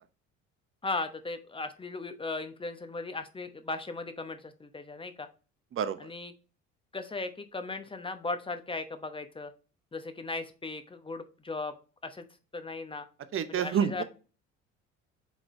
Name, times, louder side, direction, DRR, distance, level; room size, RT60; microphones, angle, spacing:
voice 1, 0.8-5.3 6.0-6.3 6.9-9.5 9.9-11.7 12.0-12.2 12.5-13.1 13.5-14.0, left 3 dB, 15° left, 9 dB, 0.9 m, -37 dB
voice 2, 13.3-14.0, right 8 dB, 35° right, 11 dB, 0.8 m, -28 dB
8.1 x 3.8 x 3.1 m, 0.35 s
figure-of-eight pair, 55°, 39 cm